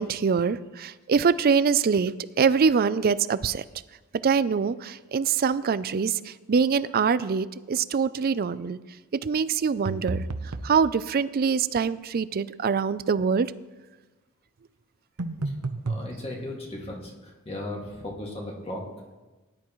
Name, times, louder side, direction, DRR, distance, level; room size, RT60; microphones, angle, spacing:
voice 1, 0.0-2.1 2.4-3.6 4.2-6.2 6.5-8.8 9.2-10.2 10.6-13.5, right 6 dB, 45° right, 16 dB, 0.4 m, -24 dB
sound 1, 9.9-10.8 15.2-16.1, right 3 dB, 80° right, 0.8 m, -31 dB
voice 2, 15.8-18.8, left 1 dB, 25° left, -2 dB, 2.1 m, -36 dB
18.5 x 10.5 x 3.1 m, 1.2 s
head